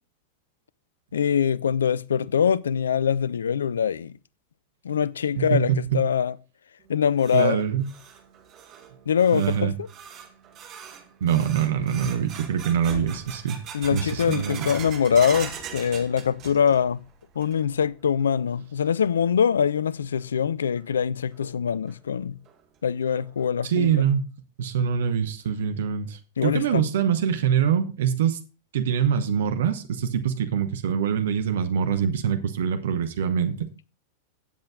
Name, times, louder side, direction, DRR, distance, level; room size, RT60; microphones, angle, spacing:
voice 1, 1.1-4.1 4.8-6.3 6.9-7.6 9.1-9.9 13.7-17.0 17.4-22.4 22.8-24.1 26.4-26.9, left 7 dB, 70° left, 0.4 m, -23 dB
voice 2, 5.4-6.0 7.3-7.9 9.3-9.7 11.2-13.6 13.9-14.7 23.6-24.3 24.6-28.4 28.7-33.7, right 8 dB, 60° right, 1.0 m, -24 dB
sound 1, 6.8-16.9 17.2-17.8 18.2-18.3 19.0-19.1 20.8-20.9 21.3-21.4 21.9-22.0 22.5-22.6 23.1-23.5, right 8 dB, 35° right, 2.0 m, -41 dB
sound 2, 11.5-17.8, left 2 dB, 20° left, 5.0 m, -46 dB
16.5 x 7.6 x 2.4 m
figure-of-eight pair, 90°, 0 cm